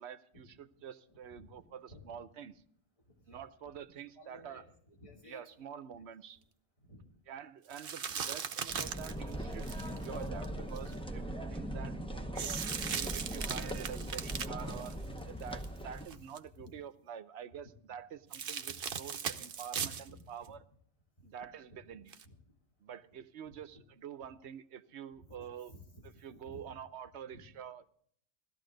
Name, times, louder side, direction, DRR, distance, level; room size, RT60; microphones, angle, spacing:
voice 1, 0.0-2.5 3.3-4.6 5.3-6.4 7.3-11.2 11.5-12.5 12.9-15.0 15.2-20.6 21.2-22.1 22.8-25.7 26.2-27.9, right 8 dB, 85° right, 13 dB, 1.0 m, -47 dB
voice 2, 1.1-2.2 3.1-3.5 4.1-6.0 6.8-7.0 10.8-11.2 13.1-13.4 16.1-16.2 16.6-16.7 18.1-18.2 19.8-20.2 21.2-21.3 21.7-22.0 22.2-22.4 23.4-23.8 25.1-26.8 27.3-27.4, left 1 dB, 30° left, -2 dB, 3.1 m, -56 dB
sound 1, 7.7-10.9 12.4-15.6 16.0-16.4 18.3-20.1 20.4-20.5 22.1-22.2, right 7 dB, 65° right, 1.0 m, -39 dB
sound 2, 8.7-16.1, right 1 dB, 5° left, 0.8 m, -40 dB
17.0 x 13.0 x 3.9 m, 0.63 s
omnidirectional pair, 1.1 m